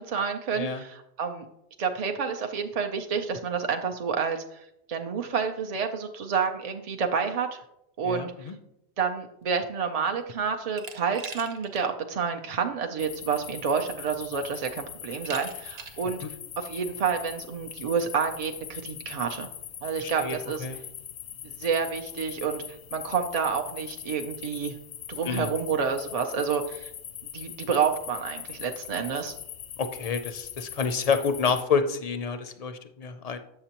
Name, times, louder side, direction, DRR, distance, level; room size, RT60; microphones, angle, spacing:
voice 1, 0.0-1.5 1.8-7.6 8.0-8.5 9.0-16.2 16.6-19.5 19.8-20.7 21.4-22.6 22.9-24.8 25.1-26.9 27.3-29.3, right 6 dB, 50° right, 4 dB, 0.4 m, -29 dB
voice 2, 8.0-8.5 16.2-16.3 20.0-20.8 25.2-25.5 29.8-33.4, left 5 dB, 50° left, 9 dB, 0.5 m, -29 dB
Glass, 10.8-11.9 12.3-12.4 13.5-13.6 14.1-14.5 15.3-16.1, right 5 dB, 70° right, 1.0 m, -41 dB
sound 1, 13.0-31.6, left 9 dB, 90° left, 0.9 m, -41 dB
7.9 x 6.6 x 2.9 m, 0.80 s
omnidirectional pair, 1.1 m